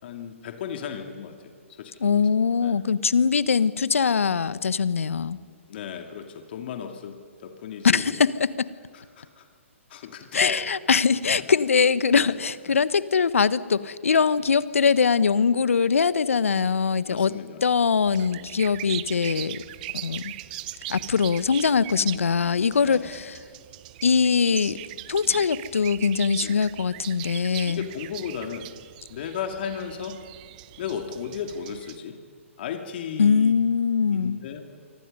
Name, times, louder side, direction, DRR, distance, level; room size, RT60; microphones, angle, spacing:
voice 1, 0.0-2.1 2.6-2.8 5.7-8.2 8.9-9.5 9.9-10.6 12.1-12.3 12.7-12.8 14.4-14.5 15.4-15.6 17.0-17.6 18.3-18.6 21.9-22.2 22.8-23.1 25.2-25.4 26.4-26.6 27.7-28.7 29.1-30.2 30.8-32.2 32.6-33.5 34.1-34.6, left 7 dB, 50° left, 5 dB, 2.4 m, -36 dB
voice 2, 2.0-5.4 7.8-8.7 10.3-17.3 17.6-19.6 19.9-20.3 20.9-23.4 24.0-24.8 25.1-27.8 33.2-34.4, left 6 dB, 75° left, 17 dB, 1.1 m, -22 dB
sound 1, 18.0-32.0, right 16 dB, 35° right, 0.8 m, -39 dB
28.5 x 24.5 x 5.5 m, 2.1 s
hypercardioid pair, 135°, 7 cm